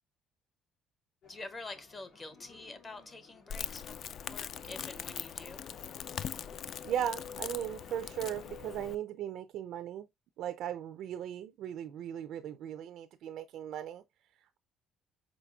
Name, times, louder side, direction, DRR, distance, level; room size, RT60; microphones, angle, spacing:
sound 1, 1.2-8.6, left 4 dB, 80° left, 2.6 m, -58 dB
voice 1, 1.3-5.6, left 3 dB, 25° left, 0.7 m, -47 dB
Crackle, 3.5-8.9, left 8 dB, 50° left, 0.3 m, -41 dB
voice 2, 6.8-10.0 10.4-14.0, right 10 dB, 65° right, 0.4 m, -37 dB
4.9 x 3.9 x 2.3 m
cardioid pair, 145°, 0 cm